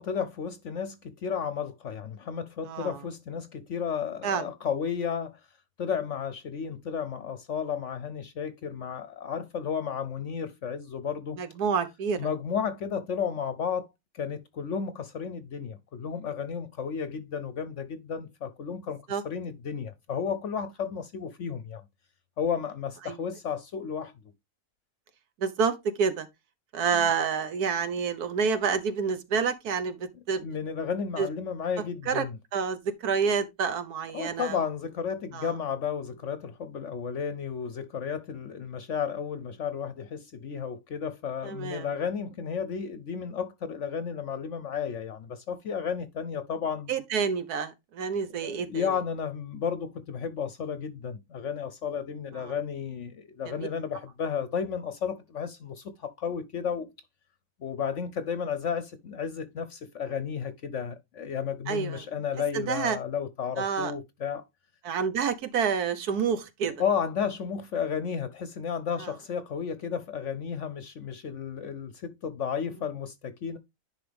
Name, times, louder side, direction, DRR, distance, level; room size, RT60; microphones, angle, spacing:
voice 1, 0.0-5.4 5.8-11.4 12.2-13.9 14.1-21.8 22.4-24.1 27.0-27.1 30.4-32.4 34.1-46.9 48.7-56.9 57.6-64.4 66.8-73.6, left 7 dB, 60° left, 0.9 m, -33 dB
voice 2, 2.7-3.0 4.2-4.4 11.4-12.2 19.1-19.2 23.0-23.2 25.4-26.3 26.7-30.4 31.2-31.3 32.1-32.3 32.5-34.6 35.3-35.5 41.4-41.9 46.9-48.9 52.4-52.5 53.4-53.7 61.7-62.1 62.5-63.0 63.6-63.9 64.8-66.7 69.0-69.1, right 6 dB, 80° right, 1.5 m, -28 dB
10.5 x 4.8 x 3.4 m
omnidirectional pair, 1.6 m